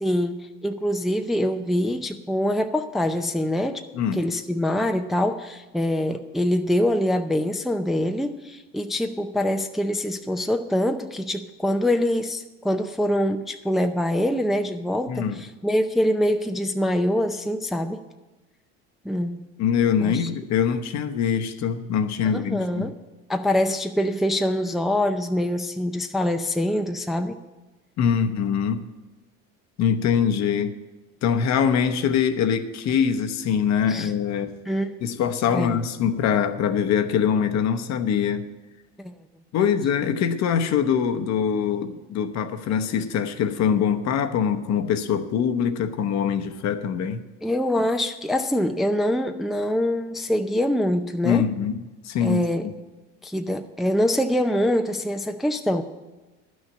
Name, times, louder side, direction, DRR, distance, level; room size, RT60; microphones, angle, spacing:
voice 1, 0.0-3.8 4.1-18.0 19.0-19.5 20.0-20.3 22.3-22.9 23.3-27.4 33.9-34.1 34.7-35.0 35.5-35.9 39.0-39.2 47.4-51.5 52.2-52.7 53.2-55.8, left 1 dB, ahead, 6 dB, 0.5 m, -24 dB
voice 2, 15.1-15.4 19.6-22.9 28.0-28.9 29.8-30.7 31.2-34.5 35.0-38.4 39.5-47.2 51.2-51.8 52.0-52.7, left 7 dB, 55° left, 8 dB, 1.0 m, -23 dB
11.0 x 6.3 x 8.6 m, 1.1 s
supercardioid pair, 90°, 33 cm